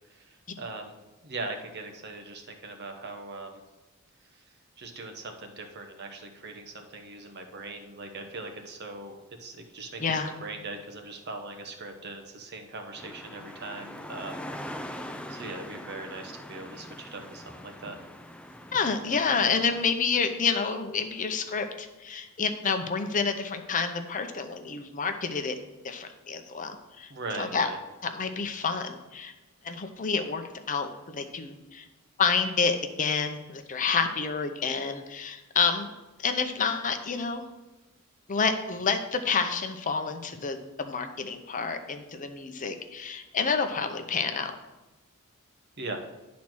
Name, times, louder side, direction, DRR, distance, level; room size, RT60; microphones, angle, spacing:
voice 1, 0.6-1.0 1.2-3.6 4.8-18.0 27.1-27.8 45.8-46.0, right 2 dB, 50° right, 4 dB, 1.0 m, -40 dB
voice 2, 10.0-10.3 18.7-25.5 25.8-27.1 27.4-27.7 28.0-29.3 29.6-31.8 32.2-35.9 36.2-37.4 38.3-44.6, left 5 dB, 40° left, 7 dB, 0.7 m, -29 dB
sound 1, 13.0-19.8, equal, 5° left, 0.4 m, -42 dB
10.5 x 4.2 x 6.2 m, 1.1 s
head